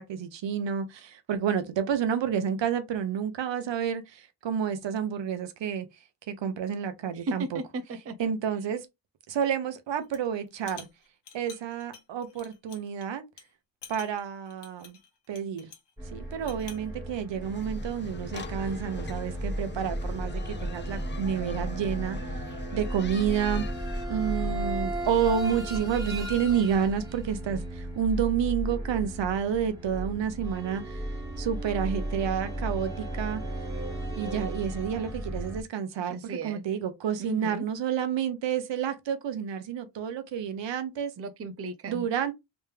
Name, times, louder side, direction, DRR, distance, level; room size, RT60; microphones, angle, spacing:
voice 1, 0.0-5.9 6.3-7.6 8.2-8.9 9.3-10.9 11.3-13.2 13.9-15.0 15.3-15.7 16.1-22.2 22.7-23.7 24.1-31.1 31.4-33.4 34.1-36.1 36.4-41.1 41.9-42.3, right 8 dB, 75° right, 1.0 m, -29 dB
voice 2, 7.1-8.3 36.1-36.7 37.2-37.7 41.2-42.1, right 2 dB, 35° right, 0.6 m, -36 dB
sound 1, 10.0-10.3 10.6-13.0 13.4-13.5 13.8-15.9 16.3-16.9, left 6 dB, 65° left, 1.1 m, -49 dB
sound 2, 16.0-35.6, right 1 dB, 10° right, 1.9 m, -34 dB
sound 3, 17.4-24.1, left 5 dB, 30° left, 0.3 m, -44 dB
3.5 x 3.1 x 3.3 m
wide cardioid pair, 125°, 44 cm